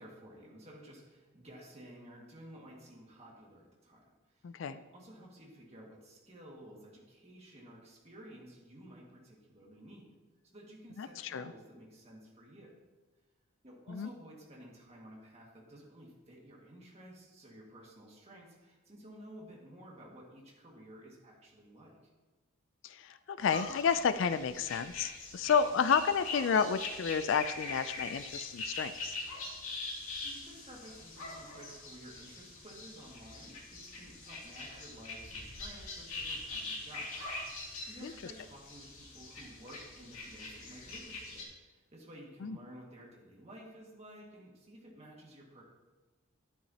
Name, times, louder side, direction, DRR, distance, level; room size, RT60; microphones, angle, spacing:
voice 1, 0.0-10.1 10.4-12.7 13.6-22.0 30.2-45.6, right 1 dB, 30° right, -2 dB, 1.9 m, -53 dB
voice 2, 4.4-4.8 11.0-11.5 13.9-14.1 22.8-29.2 38.0-38.3 42.4-42.6, left 6 dB, 60° left, 13 dB, 0.3 m, -31 dB
sound 1, 23.4-41.4, left 2 dB, 80° left, 2.3 m, -43 dB
11.0 x 10.0 x 2.9 m, 1.3 s
head